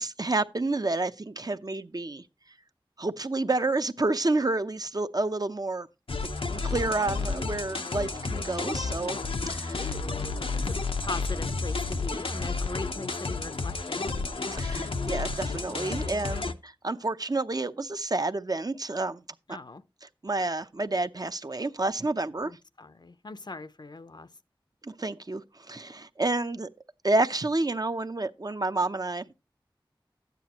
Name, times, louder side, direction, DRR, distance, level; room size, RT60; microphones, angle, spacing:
voice 1, 0.0-2.2 3.0-5.9 6.5-9.2 9.5-9.8 14.5-19.2 20.2-22.5 24.8-25.4 25.7-26.7 27.0-29.3, right 2 dB, 45° right, 0.7 m, -29 dB
sound 1, 6.1-16.5, left 3 dB, 90° left, 0.8 m, -31 dB
voice 2, 9.7-14.1 19.5-19.8 22.4-24.3, left 3 dB, 55° left, 0.6 m, -40 dB
12.5 x 9.2 x 3.0 m
wide cardioid pair, 45°, 9 cm